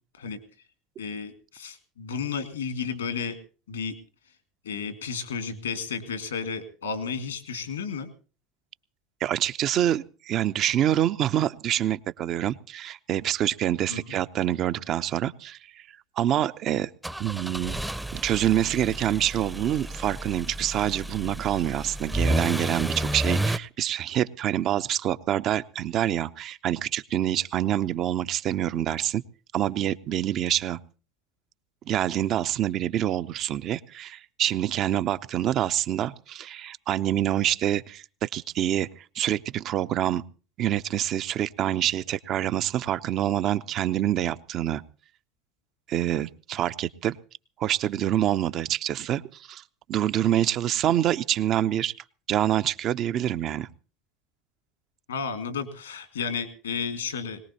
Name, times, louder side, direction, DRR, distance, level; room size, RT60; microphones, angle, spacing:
voice 1, 1.0-3.4 3.7-3.9 4.7-8.1 13.9-14.2 55.1-57.4, left 5 dB, 85° left, 10 dB, 1.9 m, -32 dB
voice 2, 9.2-15.9 16.2-16.9 17.2-17.8 18.1-29.2 29.5-30.8 31.9-40.2 40.6-44.8 45.9-47.2 47.6-49.6 49.9-51.9 52.3-53.7, right 11 dB, 50° right, 14 dB, 0.6 m, -26 dB
sound 1, 17.0-23.6, right 1 dB, 5° right, 0.6 m, -31 dB
21.0 x 19.0 x 2.9 m, 0.37 s
hypercardioid pair, 70°, 0 cm